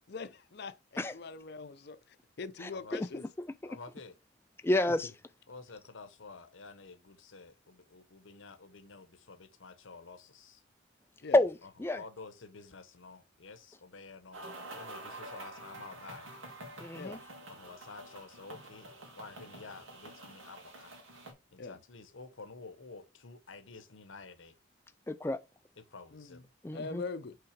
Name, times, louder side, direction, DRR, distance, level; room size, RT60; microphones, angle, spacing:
voice 1, 0.1-2.0 2.4-3.2 11.2-11.4 16.9-17.2 21.6-21.8 26.1-26.3 26.7-27.4, left 4 dB, 55° left, 0.6 m, -42 dB
voice 2, 2.6-3.1 4.6-5.1 11.3-12.0 16.8-17.2 25.1-25.4 26.6-27.0, left 2 dB, 10° left, 0.3 m, -29 dB
voice 3, 3.6-4.2 5.5-10.6 11.9-14.4 14.7-16.3 17.5-18.9 19.1-21.0 21.5-24.5 25.8-26.4, left 4 dB, 75° left, 0.9 m, -50 dB
sound 1, 14.3-21.3, right 1 dB, 85° right, 2.3 m, -48 dB
5.7 x 3.7 x 5.0 m
head